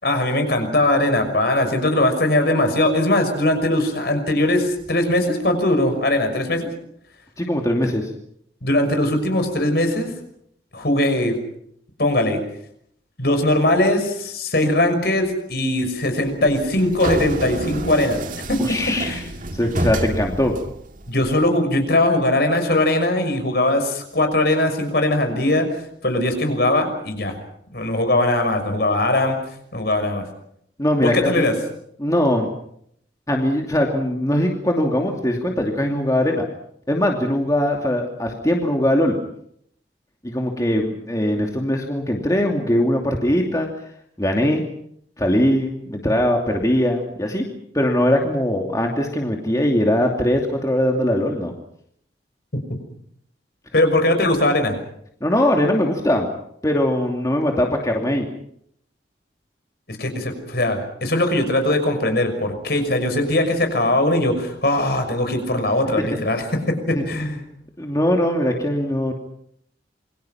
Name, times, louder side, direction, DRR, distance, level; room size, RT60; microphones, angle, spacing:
voice 1, 0.0-6.7 8.6-10.1 10.7-11.4 12.0-12.4 13.2-18.6 18.9-19.3 21.1-25.7 26.0-27.4 27.7-29.4 29.7-30.2 31.0-31.5 53.7-54.7 59.9-67.4, left 1 dB, 60° left, 6 dB, 6.0 m, -20 dB
voice 2, 7.4-8.1 18.6-19.2 19.5-20.5 30.8-31.5 32.0-32.5 33.3-36.4 36.9-39.2 40.2-43.7 44.2-44.6 45.2-47.4 47.7-51.5 55.2-56.3 56.6-58.3 66.9-67.0 67.8-69.1, left 1 dB, 20° left, 1 dB, 2.7 m, -21 dB
sound 1, 16.3-21.3, right 1 dB, 45° right, 2.1 m, -29 dB
28.0 x 24.0 x 5.9 m, 0.70 s
head